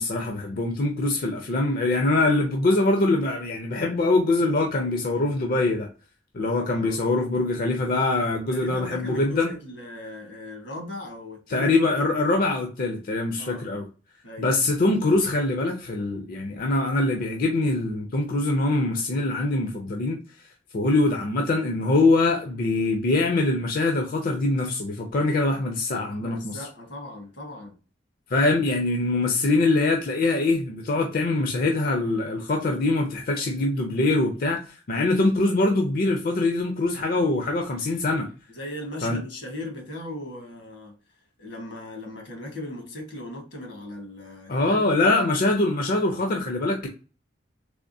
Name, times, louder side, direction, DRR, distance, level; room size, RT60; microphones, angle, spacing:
voice 1, 0.0-5.9 6.3-9.5 11.5-13.8 14.4-20.2 20.7-26.7 28.3-38.3 39.0-39.2 44.5-46.9, left 2 dB, 55° left, 0.5 m, -23 dB
voice 2, 8.5-11.7 13.4-13.6 14.2-14.5 26.1-27.8 38.5-40.9 41.4-45.1, left 2 dB, 80° left, 1.3 m, -38 dB
3.5 x 3.2 x 2.6 m
head